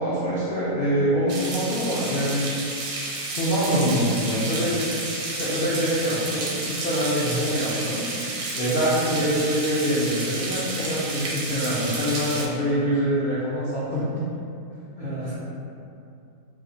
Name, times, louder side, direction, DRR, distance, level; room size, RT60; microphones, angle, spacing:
voice 1, 0.0-2.5 3.3-5.0 5.3-8.1 8.5-14.2 15.0-15.3, equal, 70° left, -9 dB, 0.5 m, -25 dB
sound 1, 1.3-12.5, right 2 dB, 85° right, 1.2 m, -31 dB
voice 2, 7.2-7.5 9.2-9.3 15.0-15.4, right 1 dB, 70° right, -6 dB, 0.8 m, -33 dB
2.8 x 2.3 x 3.7 m, 2.6 s
omnidirectional pair, 1.7 m